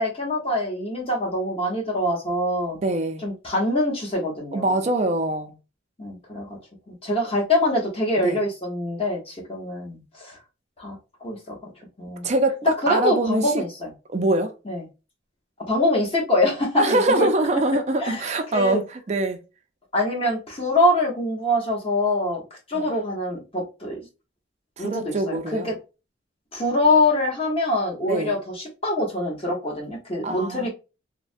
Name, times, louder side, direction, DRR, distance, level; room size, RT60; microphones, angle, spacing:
voice 1, 0.0-2.8 3.2-4.8 6.0-6.6 6.9-10.4 10.8-11.0 11.2-11.6 12.0-12.3 12.6-13.9 14.6-14.8 15.7-17.3 18.0-18.8 19.9-22.4 22.7-24.0 24.8-25.7 26.5-30.7, left 1 dB, 30° left, 0.9 m, -24 dB
voice 2, 2.8-3.2 4.5-5.6 8.2-8.4 12.2-13.6 14.1-14.5 16.8-19.4 22.7-22.9 24.8-25.7 28.1-28.4 30.2-30.7, right 2 dB, 35° right, 0.4 m, -24 dB
3.2 x 2.1 x 2.5 m
head